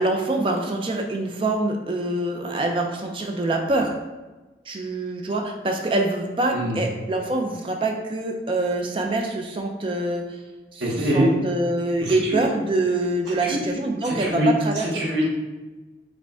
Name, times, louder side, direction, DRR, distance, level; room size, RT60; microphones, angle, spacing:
voice 1, 0.0-3.9 4.7-10.2 11.1-15.0, right 2 dB, 30° right, 2 dB, 0.4 m, -25 dB
voice 2, 6.5-6.8 10.8-11.4 12.0-12.4 13.3-13.6 14.0-14.5 14.7-15.3, equal, 85° right, -4 dB, 0.9 m, -24 dB
4.9 x 2.2 x 3.5 m, 1.2 s
head